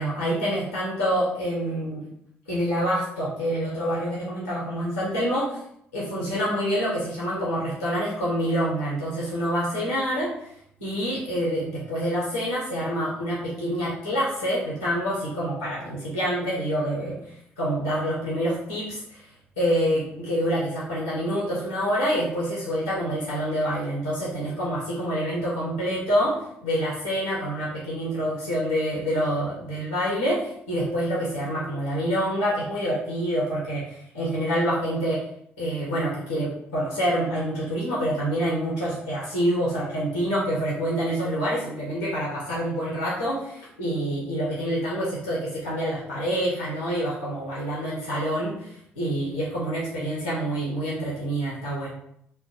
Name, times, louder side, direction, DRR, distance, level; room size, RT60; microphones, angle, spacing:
voice 1, 0.0-2.0 2.5-5.6 5.9-10.5 10.8-17.2 17.6-19.2 19.6-35.2 35.6-51.9, equal, 90° left, -6 dB, 1.1 m, -27 dB
4.4 x 2.1 x 3.7 m, 0.70 s
figure-of-eight pair, 45°, 6 cm